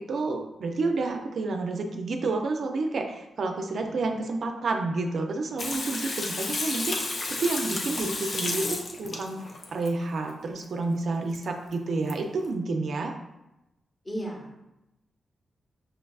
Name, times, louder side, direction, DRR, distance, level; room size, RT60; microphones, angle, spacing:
voice 1, 0.0-13.2, right 3 dB, 70° right, 4 dB, 0.4 m, -30 dB
Water tap faucet / Sink (filling or washing), 5.6-9.9 11.3-11.4 11.7-11.8 12.1-12.2, left 2 dB, 55° left, 0.5 m, -32 dB
voice 2, 14.0-14.7, right 1 dB, 25° left, -1 dB, 0.9 m, -36 dB
5.7 x 2.3 x 2.3 m, 0.94 s
cardioid pair, 75°, 0 cm